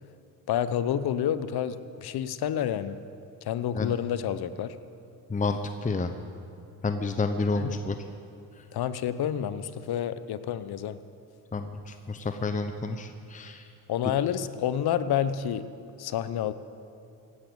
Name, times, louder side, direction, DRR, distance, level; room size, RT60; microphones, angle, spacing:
voice 1, 0.5-3.0 3.4-4.7 7.6-7.8 8.7-11.0 13.9-15.6 16.0-16.5, left 10 dB, 55° left, 14 dB, 0.9 m, -29 dB
voice 2, 5.3-6.1 6.8-8.0 8.6-8.7 11.5-13.7 14.0-14.1, left 3 dB, 15° left, 8 dB, 0.9 m, -30 dB
16.5 x 11.0 x 7.1 m, 2.6 s
hypercardioid pair, 60°, 45 cm